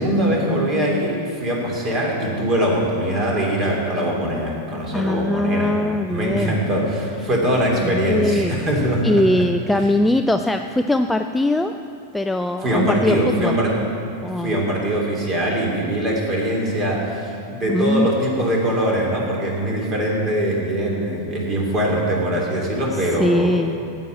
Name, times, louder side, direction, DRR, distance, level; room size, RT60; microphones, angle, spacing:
voice 1, 0.0-5.7 6.1-9.2 9.7-9.9 12.6-13.8 14.4-23.5, equal, 25° right, -2 dB, 3.0 m, -22 dB
voice 2, 4.9-6.6 7.8-8.6 9.0-11.7 12.1-13.6 14.2-14.6 17.7-18.1 23.2-23.8, left 1 dB, 5° left, 7 dB, 0.3 m, -21 dB
9.2 x 8.2 x 8.2 m, 2.5 s
figure-of-eight pair, 90°, 0 cm